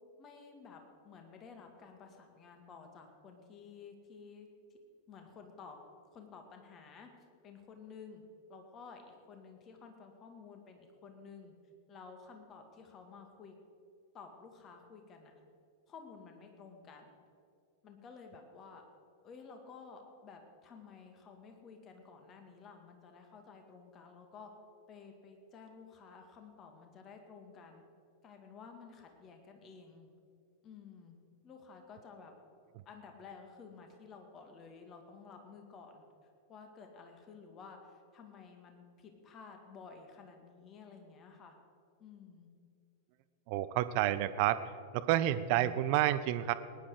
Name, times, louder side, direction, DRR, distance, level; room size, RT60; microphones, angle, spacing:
voice 1, 0.2-4.5 5.1-5.8 6.1-7.1 7.4-8.2 8.5-11.5 11.9-13.6 14.1-15.3 15.9-17.1 17.8-18.8 19.2-24.5 24.9-27.8 28.2-30.1 30.6-31.2 31.4-32.3 32.9-36.0 36.5-41.6 42.0-42.5, left 5 dB, 30° left, 4 dB, 1.9 m, -53 dB
voice 2, 43.5-46.5, right 13 dB, 45° right, 14 dB, 0.6 m, -30 dB
19.0 x 10.5 x 4.9 m, 2.4 s
figure-of-eight pair, 90°, 0 cm